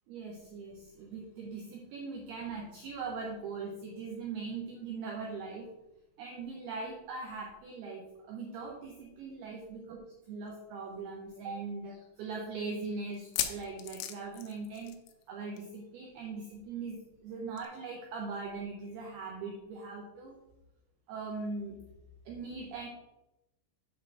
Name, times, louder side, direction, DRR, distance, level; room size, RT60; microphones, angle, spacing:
voice 1, 0.1-5.7 6.2-15.0 15.3-20.4 21.1-21.8 22.3-22.9, right 4 dB, 90° right, 0 dB, 2.2 m, -40 dB
sound 1, 10.5-10.6 10.9-11.0 11.6-11.7 13.1-15.3 15.5-15.8 16.0-16.1 17.6-17.7, left 11 dB, 90° left, 3.3 m, -37 dB
8.3 x 4.2 x 6.2 m, 0.95 s
omnidirectional pair, 5.7 m